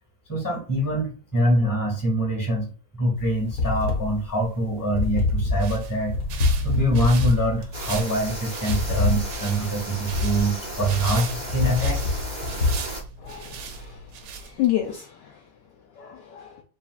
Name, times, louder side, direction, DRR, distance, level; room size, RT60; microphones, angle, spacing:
voice 1, 0.3-2.7 2.9-6.2 6.6-12.2, right 1 dB, 10° left, -1 dB, 1.2 m, -24 dB
sound 1, 3.2-12.8, left 3 dB, 55° left, 1.4 m, -26 dB
sound 2, 5.4-14.9, right 5 dB, 70° right, 1.2 m, -38 dB
sound 3, 7.7-13.0, right 1 dB, 45° right, 0.5 m, -35 dB
voice 2, 13.2-14.0 14.4-15.3 16.0-16.6, left 13 dB, 75° left, 3 dB, 1.0 m, -29 dB
6.8 x 2.6 x 2.4 m, 0.37 s
omnidirectional pair, 2.3 m